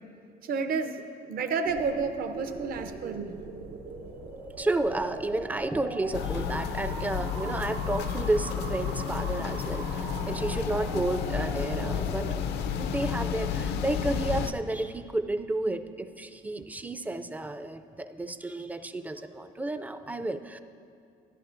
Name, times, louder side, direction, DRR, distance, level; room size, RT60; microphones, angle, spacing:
voice 1, 0.4-3.3, right 5 dB, 60° right, 8 dB, 0.7 m, -31 dB
sound 1, 1.6-12.4, right 4 dB, 90° right, 1.0 m, -41 dB
voice 2, 4.6-12.3 12.8-20.6, right 2 dB, 10° right, 10 dB, 0.3 m, -31 dB
sound 2, 6.1-14.5, left 7 dB, 75° left, 0.5 m, -31 dB
13.5 x 11.0 x 2.5 m, 2.4 s
cardioid pair, 110°, 17 cm